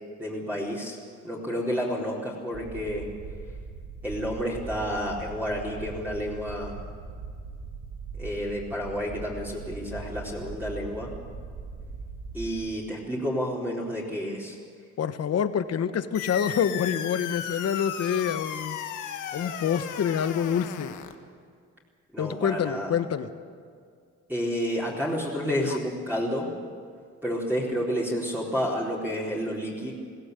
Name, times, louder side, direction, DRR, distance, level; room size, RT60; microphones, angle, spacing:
voice 1, 0.2-1.0 1.2-3.1 4.0-6.8 8.2-11.1 12.3-14.6 22.1-22.9 24.3-26.5 27.2-29.9, equal, 5° right, -6 dB, 4.2 m, -30 dB
sound 1, 2.5-12.5, right 4 dB, 80° right, 3.7 m, -40 dB
voice 2, 15.0-18.8 19.3-20.9 22.2-23.3, left 8 dB, 55° left, 11 dB, 1.3 m, -27 dB
sound 2, 16.1-21.1, left 9 dB, 85° left, 1.5 m, -35 dB
21.5 x 16.0 x 8.3 m, 2.1 s
cardioid pair, 90°, 30 cm